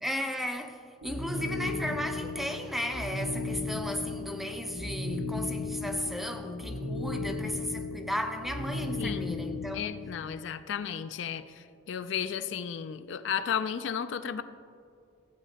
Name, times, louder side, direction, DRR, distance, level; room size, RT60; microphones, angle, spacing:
voice 1, 0.0-10.0, equal, ahead, 0.5 m, -35 dB
sound 1, 1.0-10.2, left 3 dB, 70° right, 1.0 m, -35 dB
voice 2, 9.0-9.3 9.7-14.4, left 8 dB, 65° left, 0.3 m, -34 dB
15.0 x 8.2 x 2.8 m
head